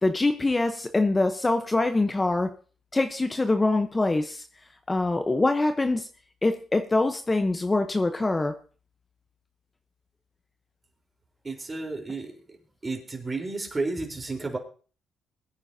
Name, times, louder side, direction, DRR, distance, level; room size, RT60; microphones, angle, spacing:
voice 1, 0.0-2.5 2.9-4.4 4.9-6.1 6.4-8.5, left 2 dB, 20° left, 7 dB, 0.9 m, -24 dB
voice 2, 11.4-12.3 12.8-14.6, right 3 dB, 25° right, 2 dB, 3.9 m, -32 dB
21.5 x 9.7 x 2.8 m, 0.38 s
cardioid pair, 90°, 0 cm